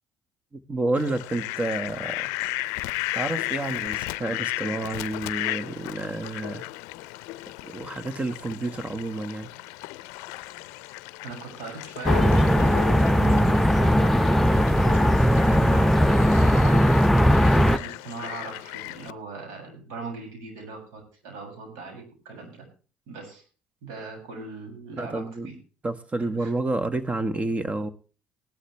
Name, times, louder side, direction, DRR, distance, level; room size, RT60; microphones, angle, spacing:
voice 1, 0.5-2.3 3.1-6.6 7.6-9.5 25.0-25.5 25.8-27.9, right 2 dB, 25° right, 12 dB, 1.5 m, -29 dB
Fowl, 1.0-19.1, left 19 dB, 80° left, 0.5 m, -35 dB
voice 2, 11.2-16.8 17.2-22.6 23.1-23.4 23.8-25.6 26.4-26.5, right 4 dB, 75° right, 2 dB, 6.6 m, -39 dB
sound 1, 12.0-17.8, equal, 5° left, 0.6 m, -19 dB
18.5 x 11.5 x 3.2 m, 0.37 s
hypercardioid pair, 65°, 5 cm